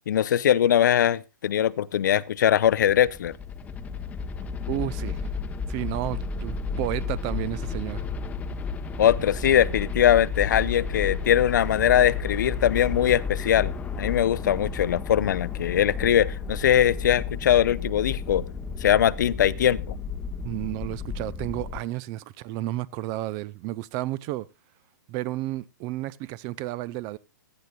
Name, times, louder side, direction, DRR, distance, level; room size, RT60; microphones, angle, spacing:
voice 1, 0.1-3.3 9.0-13.7 14.0-18.4 18.8-20.0, left 10 dB, 65° left, 0.6 m, -21 dB
sound 1, 2.4-21.8, left 5 dB, 15° left, 0.9 m, -32 dB
voice 2, 4.7-5.2 5.7-8.0 20.4-24.5 25.1-27.2, right 16 dB, 35° right, 0.5 m, -32 dB
16.5 x 12.0 x 2.3 m
hypercardioid pair, 130°, 11 cm